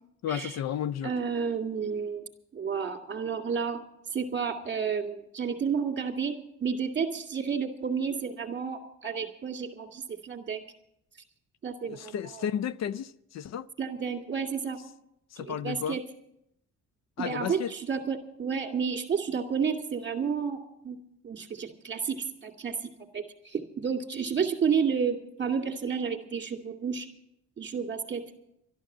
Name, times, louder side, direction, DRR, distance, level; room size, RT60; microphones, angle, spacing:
voice 1, 0.2-1.1 11.8-13.7 15.3-16.0 17.2-17.7, left 9 dB, 60° left, 0.5 m, -33 dB
voice 2, 1.0-3.8 4.1-6.3 6.6-10.6 11.6-12.4 13.8-14.8 15.4-16.0 17.2-21.0 21.2-22.7 23.1-27.1 27.6-28.2, right 6 dB, 35° right, 2.2 m, -31 dB
12.5 x 11.5 x 7.3 m
cardioid pair, 90°, 30 cm